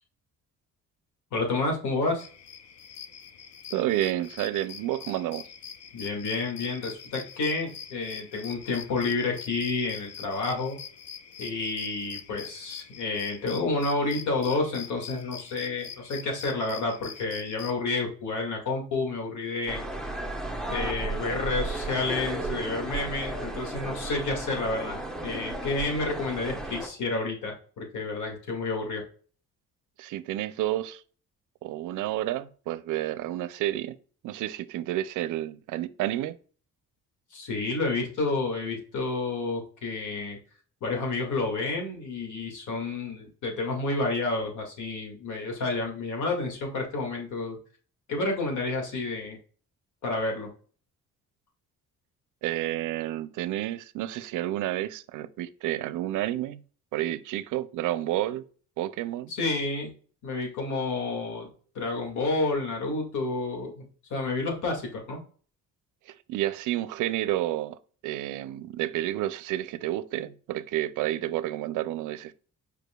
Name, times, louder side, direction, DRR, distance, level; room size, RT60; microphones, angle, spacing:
voice 1, 1.3-2.3 5.9-10.8 11.4-19.8 20.7-29.0 37.3-40.4 40.8-47.6 48.1-49.4 50.0-50.5 59.3-59.9 60.2-61.5 61.8-65.2, left 3 dB, 75° left, 1.9 m, -30 dB
sound 1, 2.2-17.7, left 7 dB, 55° left, 0.6 m, -44 dB
voice 2, 3.7-5.5 30.0-31.0 31.6-34.0 34.2-36.4 52.4-56.6 56.9-58.4 58.8-59.3 66.1-67.8 68.0-72.3, right 14 dB, 85° right, 0.5 m, -30 dB
sound 2, 19.7-26.9, right 2 dB, ahead, 0.8 m, -34 dB
4.9 x 4.8 x 2.2 m
cardioid pair, 90°, 30 cm